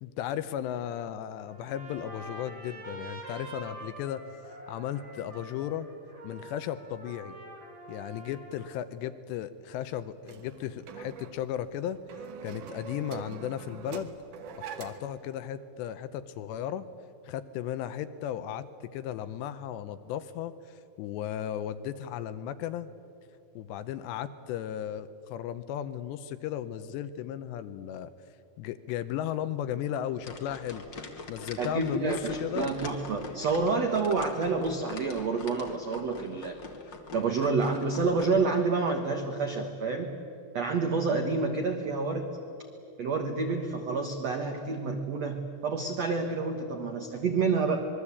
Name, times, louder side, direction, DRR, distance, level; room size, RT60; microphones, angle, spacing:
voice 1, 0.0-4.3 4.7-5.9 6.2-7.4 7.9-12.0 12.4-14.1 14.8-16.9 17.3-18.7 18.9-20.5 21.0-22.9 23.6-28.1 28.6-30.8 31.3-32.7, left 10 dB, 80° left, 12 dB, 2.8 m, -35 dB
Trumpet, 1.5-8.8, right 1 dB, 25° right, 4.3 m, -46 dB
sound 1, 10.2-15.2, right 6 dB, 65° right, 2.2 m, -43 dB
sound 2, 30.2-38.2, left 3 dB, 50° left, 1.3 m, -44 dB
voice 2, 31.6-36.6 37.1-40.1 40.5-42.3 43.0-47.9, right 4 dB, 80° right, 4 dB, 1.4 m, -28 dB
26.5 x 21.5 x 8.5 m, 2.6 s
omnidirectional pair, 5.3 m